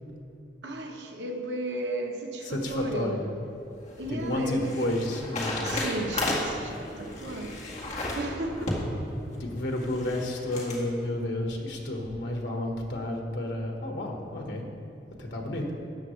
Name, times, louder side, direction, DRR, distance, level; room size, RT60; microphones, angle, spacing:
voice 1, 0.6-3.2 4.0-4.9 5.6-7.6 8.2-8.8 15.8-15.9, right 1 dB, 90° right, 3 dB, 1.0 m, -34 dB
voice 2, 2.4-3.3 4.1-5.8 9.4-14.6 15.2-15.7, left 1 dB, 80° left, 1 dB, 1.4 m, -31 dB
sound 1, 3.5-10.8, left 1 dB, 45° left, 1.9 m, -34 dB
13.0 x 8.8 x 3.2 m, 2.8 s
head